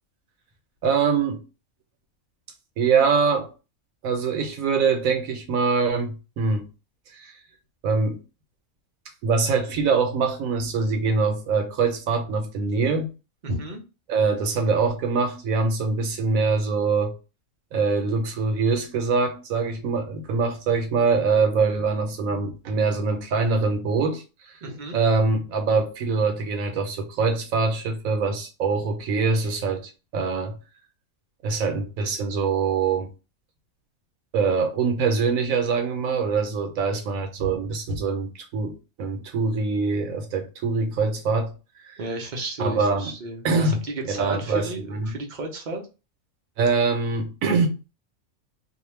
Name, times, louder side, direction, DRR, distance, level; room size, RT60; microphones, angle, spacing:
voice 1, 0.8-1.4 2.8-3.5 4.0-6.7 7.2-7.3 7.8-8.2 9.2-13.1 14.1-17.1 17.7-24.2 24.9-30.5 31.4-33.1 34.3-41.5 41.9-42.0 42.6-43.1 43.4-45.1 46.6-47.7, right 4 dB, 75° right, 1.1 m, -24 dB
voice 2, 13.4-13.8 24.6-25.0 42.0-45.8, right 2 dB, 50° right, 0.6 m, -33 dB
2.7 x 2.2 x 3.1 m
omnidirectional pair, 1.5 m